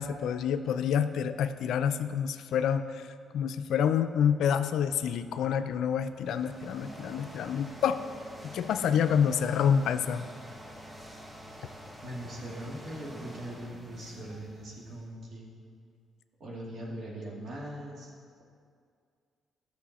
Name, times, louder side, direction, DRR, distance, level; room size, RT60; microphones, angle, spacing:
voice 1, 0.0-2.9 3.3-8.0 8.4-10.2, left 8 dB, 80° left, 10 dB, 0.4 m, -27 dB
sound 1, 6.0-15.2, equal, 15° right, 1.0 m, -47 dB
voice 2, 11.6-15.5 16.4-18.1, right 1 dB, 55° right, -3 dB, 2.2 m, -41 dB
12.5 x 6.4 x 4.2 m, 2.2 s
cardioid pair, 90°, 0 cm